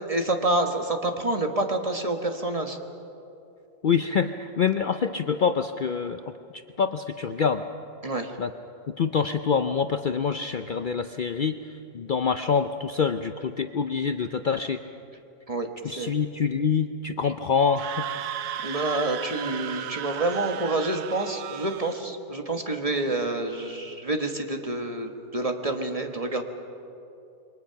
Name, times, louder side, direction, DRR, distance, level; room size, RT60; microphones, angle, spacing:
voice 1, 0.1-2.8 8.0-8.3 15.5-16.1 18.6-26.4, right 2 dB, 25° right, 4 dB, 1.3 m, -28 dB
voice 2, 3.8-6.2 6.8-7.6 8.4-8.5 9.0-11.6 11.9-14.8 15.8-17.9, left 6 dB, 75° left, 8 dB, 0.4 m, -25 dB
Screaming, 17.6-22.0, right 10 dB, 80° right, 1.3 m, -35 dB
27.5 x 23.0 x 5.8 m, 2.7 s
omnidirectional pair, 1.6 m